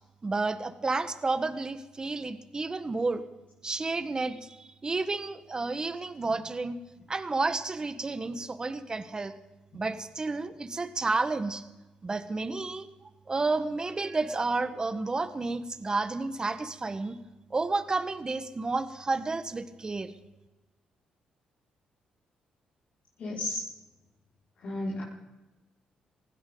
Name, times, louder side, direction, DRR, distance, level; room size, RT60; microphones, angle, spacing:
voice 1, 0.2-3.2 3.6-6.8 7.1-9.3 9.7-11.6 12.0-12.9 13.3-17.2 17.5-20.1, right 3 dB, 30° right, 10 dB, 1.4 m, -31 dB
voice 2, 23.2-23.6 24.6-25.0, left 1 dB, 65° left, -8 dB, 5.3 m, -33 dB
19.0 x 15.5 x 3.9 m, 1.1 s
supercardioid pair, 65°, 3 cm